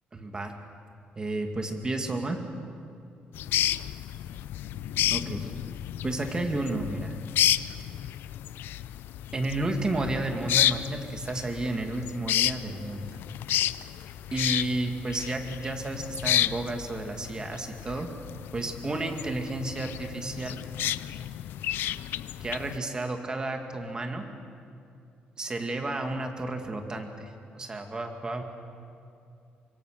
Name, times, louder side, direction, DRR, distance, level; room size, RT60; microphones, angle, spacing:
voice 1, 0.1-0.5 1.2-2.4 5.1-5.5 6.0-7.1 9.3-13.2 14.3-18.1 18.5-20.6 22.4-24.2 25.4-28.4, right 2 dB, 25° right, 4 dB, 2.3 m, -32 dB
sound 1, 3.3-22.8, left 12 dB, 85° left, 0.5 m, -31 dB
25.5 x 23.0 x 6.7 m, 2.5 s
cardioid pair, 135°, 3 cm